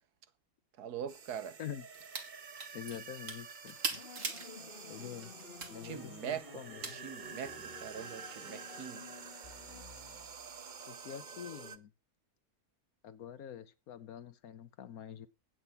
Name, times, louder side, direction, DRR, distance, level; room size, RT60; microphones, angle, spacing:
voice 1, 0.8-1.6 5.8-6.6 6.9-9.0, right 8 dB, 90° right, 1.6 m, -42 dB
sound 1, 1.1-11.8, right 6 dB, 40° right, 0.8 m, -49 dB
sound 2, 1.9-2.3 2.6-4.5 5.0-5.7 6.8-6.9, right 4 dB, 55° right, 2.3 m, -39 dB
voice 2, 2.7-4.0 4.9-5.3 5.7-6.8 10.9-11.9 13.0-15.3, left 9 dB, 70° left, 1.3 m, -46 dB
sound 3, 3.9-10.6, left 5 dB, 40° left, 1.6 m, -53 dB
10.5 x 8.7 x 5.8 m
omnidirectional pair, 1.6 m